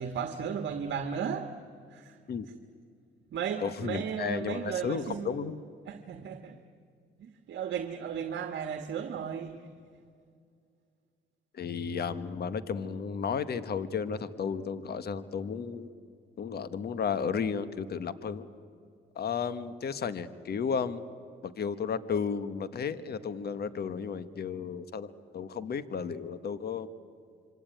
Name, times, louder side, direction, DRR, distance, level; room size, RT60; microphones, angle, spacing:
voice 1, 0.0-1.5 1.9-2.2 3.3-5.3 5.9-6.6 7.2-9.6, right 7 dB, 65° right, 1.5 m, -35 dB
voice 2, 3.6-5.6 11.5-15.9 16.4-18.5 19.1-21.0 21.4-26.9, left 6 dB, 55° left, 1.4 m, -33 dB
26.5 x 24.5 x 9.1 m
cardioid pair, 90°, 20 cm